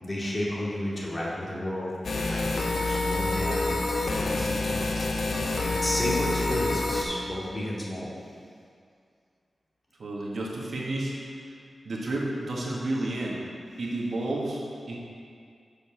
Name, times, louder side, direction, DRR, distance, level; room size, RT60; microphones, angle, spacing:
voice 1, 0.0-3.7 4.1-5.1 5.7-8.1, left 1 dB, 35° left, -5 dB, 2.1 m, -32 dB
sound 1, 2.0-7.0, left 2 dB, 75° left, 0.7 m, -27 dB
voice 2, 10.0-11.1 11.8-13.4 13.8-14.6 14.9-15.0, right 2 dB, 75° right, -3 dB, 1.4 m, -31 dB
6.6 x 5.1 x 6.0 m, 2.3 s
cardioid pair, 55°, 0 cm